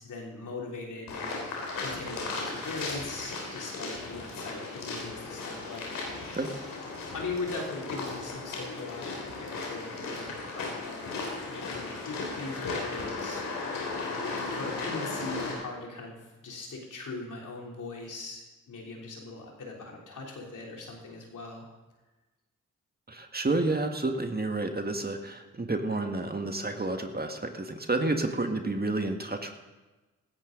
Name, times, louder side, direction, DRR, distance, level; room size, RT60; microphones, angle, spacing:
voice 1, 0.0-1.4 1.8-6.4 7.1-13.4 14.5-21.7, left 3 dB, 70° left, -1 dB, 3.5 m, -40 dB
sound 1, 1.1-15.5, left 3 dB, 85° left, 3.2 m, -36 dB
voice 2, 23.1-29.5, right 2 dB, 30° right, 5 dB, 1.9 m, -30 dB
16.5 x 13.5 x 4.0 m, 1.1 s
supercardioid pair, 40°, 32 cm